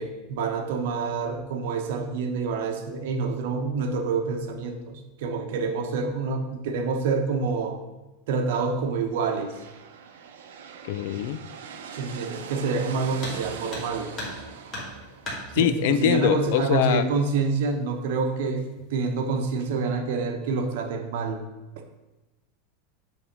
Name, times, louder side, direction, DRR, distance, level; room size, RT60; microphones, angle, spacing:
voice 1, 0.0-7.8 8.3-9.5 12.0-14.1 15.5-21.4, right 4 dB, 60° right, 5 dB, 0.9 m, -27 dB
sound 1, 9.1-16.8, right 6 dB, 85° right, 0.8 m, -42 dB
voice 2, 10.8-11.4 15.5-17.0, left 10 dB, 55° left, 12 dB, 0.4 m, -23 dB
sound 2, 13.2-13.4 13.7-14.4 14.7-15.4 16.6-16.7 17.2-17.3 18.0-18.4 18.8-19.2, left 1 dB, 20° left, 1.9 m, -36 dB
8.8 x 3.5 x 5.3 m, 1.1 s
supercardioid pair, 175°, 0 cm